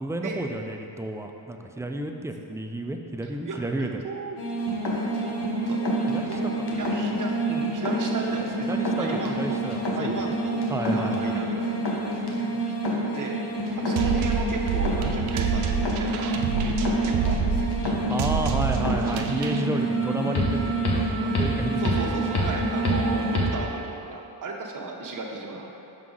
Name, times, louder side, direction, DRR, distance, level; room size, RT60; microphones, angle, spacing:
voice 1, 0.0-4.0 6.1-6.6 8.7-10.3 10.7-11.4 18.1-22.3, right 1 dB, 5° right, 4 dB, 0.4 m, -31 dB
voice 2, 3.2-4.6 5.2-9.6 9.9-11.7 12.3-12.8 13.1-13.4 13.8-17.7 21.8-25.7, right 3 dB, 40° right, 0 dB, 1.0 m, -35 dB
sound 1, 4.4-23.5, right 1 dB, 55° left, 1.2 m, -27 dB
sound 2, 14.0-19.6, right 5 dB, 85° right, 0.6 m, -28 dB
Wind instrument woodwind instrument, 19.7-24.0, right 9 dB, 25° right, 1.5 m, -39 dB
6.0 x 5.7 x 3.8 m, 2.8 s
cardioid pair, 65°, 47 cm